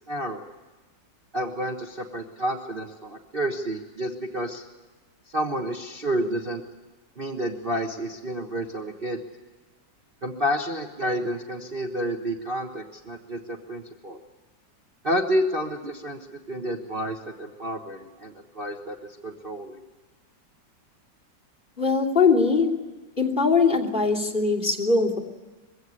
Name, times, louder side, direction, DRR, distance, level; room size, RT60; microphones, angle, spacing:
voice 1, 0.1-0.5 1.3-4.6 5.3-6.6 7.2-9.2 10.2-14.2 15.0-19.0 19.2-19.8, equal, 35° right, 3 dB, 1.4 m, -30 dB
voice 2, 21.8-22.8 23.2-25.2, left 4 dB, 25° left, -3 dB, 3.1 m, -21 dB
22.5 x 16.5 x 9.5 m, 1.3 s
omnidirectional pair, 2.0 m